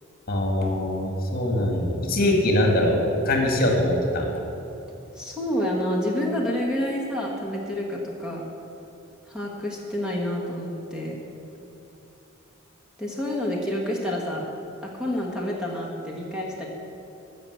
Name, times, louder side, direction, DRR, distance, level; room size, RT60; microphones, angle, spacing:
voice 1, 0.3-3.0 3.3-4.3, left 1 dB, 45° left, 1 dB, 1.9 m, -22 dB
voice 2, 5.1-8.4 9.3-11.2 13.0-14.5 14.8-16.7, left 1 dB, 5° right, -3 dB, 1.5 m, -28 dB
14.0 x 6.0 x 8.1 m, 2.9 s
head